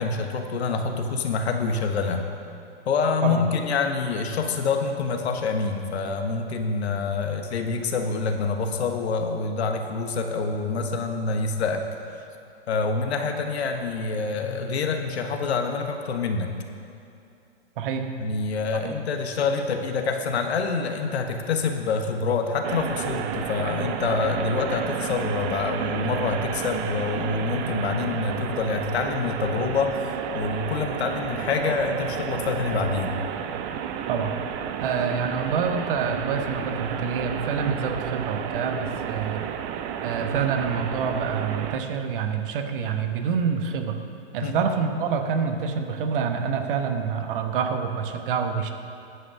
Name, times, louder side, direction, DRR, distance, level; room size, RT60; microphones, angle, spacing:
voice 1, 0.0-2.2 2.9-11.9 12.2-12.3 12.7-16.5 18.2-33.2 44.4-44.7, left 4 dB, 70° left, 5 dB, 1.3 m, -26 dB
voice 2, 17.8-18.1 18.7-18.9 34.1-34.3 34.8-39.5 40.0-44.0 44.3-48.7, right 6 dB, 50° right, 6 dB, 1.1 m, -27 dB
sound 1, 22.6-41.8, right 8 dB, 25° right, 0.5 m, -31 dB
11.0 x 5.7 x 7.6 m, 2.5 s
hypercardioid pair, 130°, 33 cm